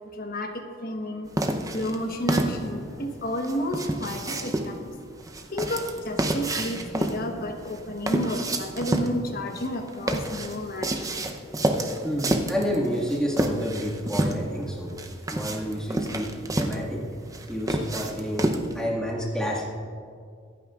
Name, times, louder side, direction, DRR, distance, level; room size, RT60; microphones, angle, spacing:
voice 1, 0.1-1.3 1.7-4.9 5.5-11.3, equal, 45° left, 4 dB, 1.1 m, -31 dB
sound 1, 1.4-18.8, right 1 dB, 15° right, 0.7 m, -29 dB
voice 2, 12.0-14.9 15.3-16.3 16.6-17.0 17.5-18.5 18.7-19.6, equal, 5° left, -5 dB, 1.9 m, -29 dB
25.0 x 9.1 x 2.5 m, 2.3 s
head